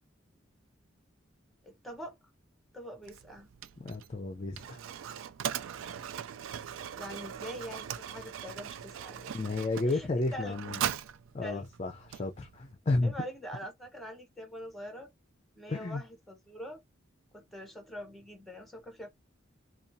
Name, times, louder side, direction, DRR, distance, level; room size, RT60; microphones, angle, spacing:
voice 1, 1.6-2.1 2.7-3.5 6.9-9.4 9.9-10.6 11.4-11.7 13.0-15.1 15.6-16.8 17.3-19.1, equal, ahead, 0.8 m, -44 dB
Mechanisms, 3.0-12.7, right 9 dB, 90° right, 0.3 m, -40 dB
voice 2, 3.8-4.8 9.3-10.8 11.3-13.1 15.7-16.0, left 2 dB, 35° left, 0.4 m, -32 dB
2.7 x 2.3 x 2.6 m
head